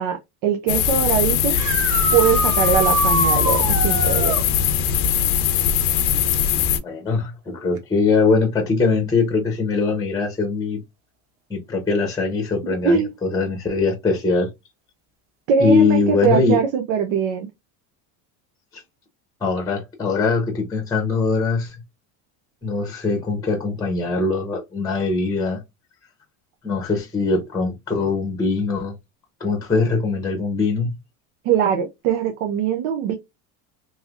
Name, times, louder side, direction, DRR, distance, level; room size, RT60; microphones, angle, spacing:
voice 1, 0.0-1.6 2.1-4.4 12.6-13.1 15.5-17.5 31.4-33.1, right 7 dB, 85° right, 0.7 m, -21 dB
sound 1, 0.7-6.8, left 8 dB, 90° left, 0.7 m, -20 dB
sound 2, 1.5-4.5 7.8-7.9 9.9-10.0 16.2-16.3, right 3 dB, 35° right, 0.9 m, -24 dB
voice 2, 6.8-10.8 11.5-14.5 15.6-16.6 18.7-18.8 19.4-21.8 22.6-25.6 26.6-28.9 29.4-30.9, left 4 dB, 10° left, 0.7 m, -21 dB
3.2 x 2.7 x 2.4 m
cardioid pair, 135°, 40 cm